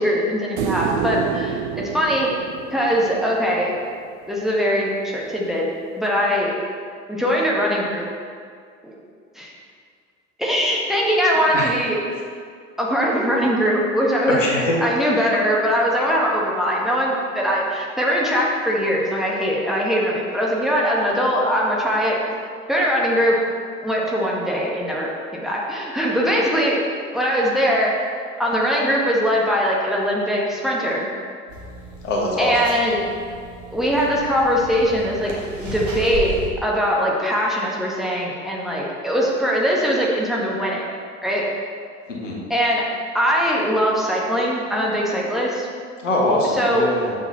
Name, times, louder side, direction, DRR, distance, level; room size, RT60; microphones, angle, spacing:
voice 1, 0.0-2.3 2.7-3.7 4.3-5.6 6.0-6.5 7.1-8.1 8.8-8.9 9.3-9.5 10.4-12.0 12.8-14.4 14.8-22.2 22.7-23.4 23.8-26.8 27.1-27.9 28.4-31.1 32.4-33.0 33.7-35.3 35.6-40.8 41.2-41.4 42.5-42.9 43.1-45.7 46.4-46.9, equal, ahead, -4 dB, 1.5 m, -21 dB
sound 1, 0.6-3.8 6.4-6.5, right 8 dB, 50° right, 0.6 m, -28 dB
voice 2, 14.2-14.7 32.0-32.5 42.1-42.4 46.0-47.1, left 1 dB, 75° left, -2 dB, 1.5 m, -22 dB
sound 2, 31.5-36.5, right 2 dB, 80° right, 1.5 m, -34 dB
7.0 x 6.0 x 5.6 m, 2.1 s
figure-of-eight pair, 70°, 38 cm